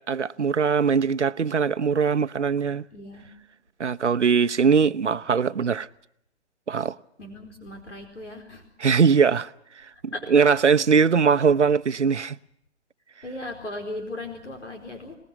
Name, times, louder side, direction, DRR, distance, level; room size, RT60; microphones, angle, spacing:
voice 1, 0.0-2.8 3.8-5.9 6.7-7.0 8.8-9.5 9.8-12.4, right 6 dB, 80° right, 0.9 m, -21 dB
voice 2, 2.9-3.3 7.2-8.6 10.1-10.3 13.2-15.1, left 2 dB, 85° left, 4.6 m, -37 dB
27.5 x 20.0 x 6.0 m
figure-of-eight pair, 130°, 35 cm